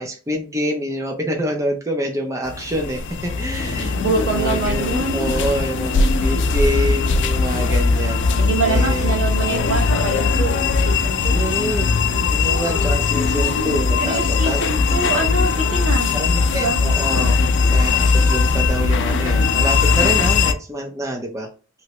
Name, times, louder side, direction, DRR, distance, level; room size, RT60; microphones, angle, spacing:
voice 1, 0.0-4.0 4.2-8.3 8.6-9.1 11.3-11.9 12.3-14.6 16.1-17.4 17.7-21.5, right 1 dB, 15° right, 2 dB, 0.5 m, -26 dB
sound 1, 2.4-20.5, left 4 dB, 55° left, 0.4 m, -19 dB
sound 2, 3.5-19.9, left 2 dB, 30° left, 0.7 m, -37 dB
voice 2, 4.0-5.3 8.4-11.3 14.0-16.2 16.5-16.8, right 3 dB, 70° right, -8 dB, 1.2 m, -24 dB
2.9 x 2.7 x 3.0 m, 0.36 s
head